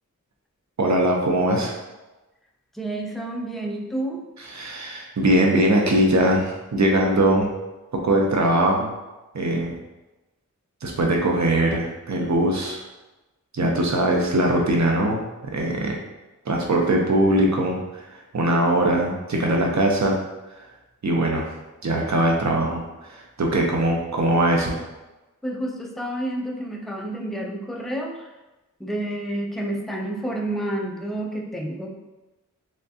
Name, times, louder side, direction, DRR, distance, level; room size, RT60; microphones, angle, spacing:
voice 1, 0.8-1.7 4.5-7.5 7.9-8.9 9.3-9.8 10.8-12.8 13.5-16.0 16.5-18.0 18.3-20.2 21.0-21.4 21.8-22.8 23.1-24.8, right 1 dB, 60° right, 0 dB, 0.7 m, -21 dB
voice 2, 2.7-4.2 25.4-28.3 28.8-31.9, right 1 dB, ahead, 0 dB, 0.4 m, -29 dB
3.5 x 3.2 x 2.7 m, 1.1 s
wide cardioid pair, 70°, 31 cm